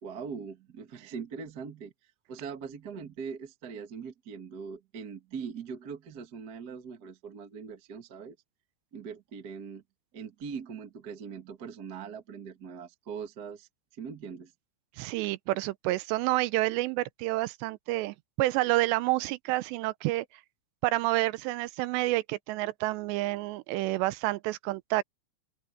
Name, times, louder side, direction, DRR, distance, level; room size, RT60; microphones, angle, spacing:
voice 1, 0.0-1.9 2.3-8.3 8.9-9.8 10.1-13.7 14.0-14.5, right 6 dB, 60° right, 1.0 m, -41 dB
voice 2, 15.0-20.3 20.8-25.0, right 18 dB, 85° right, 2.8 m, -29 dB
open air
omnidirectional pair, 5.0 m